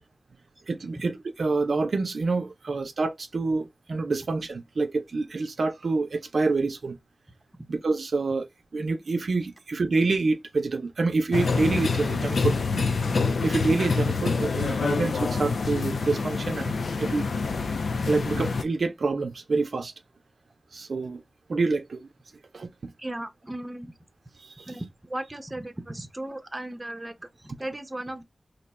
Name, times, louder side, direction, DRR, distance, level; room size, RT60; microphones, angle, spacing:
voice 1, 0.7-7.0 7.7-12.9 13.4-17.3 18.1-19.9 20.7-21.2 21.5-22.1 22.5-22.9 24.4-24.7, right 3 dB, 70° right, 0.5 m, -27 dB
sound 1, 11.3-18.6, left 4 dB, 85° left, 0.5 m, -26 dB
voice 2, 23.0-23.9 24.7-28.2, right 1 dB, 20° right, 0.6 m, -36 dB
2.7 x 2.2 x 4.0 m
wide cardioid pair, 80°, 0 cm